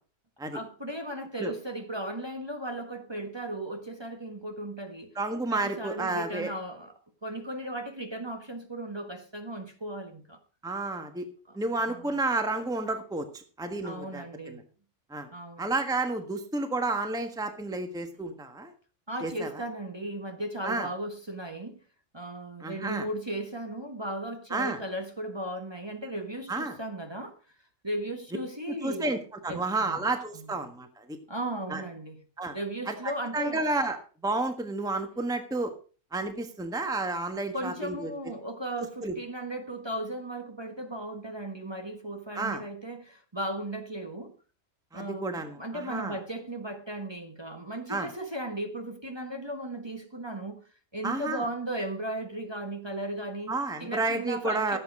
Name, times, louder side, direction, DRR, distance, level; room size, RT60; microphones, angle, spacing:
voice 1, 0.5-5.1 5.5-10.4 11.5-11.6 11.9-12.2 13.8-14.6 15.3-15.7 19.1-21.8 22.1-27.4 27.8-29.1 29.5-30.0 30.3-30.6 31.3-32.2 32.5-33.6 37.5-44.3 44.9-53.5 53.8-54.8, right 1 dB, 20° right, 1.5 m, -36 dB
voice 2, 5.1-6.5 10.6-11.3 11.5-14.6 15.1-15.3 15.6-18.7 19.2-19.5 20.6-20.9 22.6-23.0 24.5-24.8 26.5-26.7 28.7-29.2 29.4-31.2 31.7-31.8 32.4-32.6 32.9-34.0 34.2-35.7 36.1-38.1 39.0-39.1 42.3-42.6 44.9-45.6 45.9-46.1 47.9-48.1 51.0-51.4 53.5-54.8, right 2 dB, 5° right, 1.4 m, -31 dB
15.0 x 8.2 x 4.9 m
omnidirectional pair, 1.3 m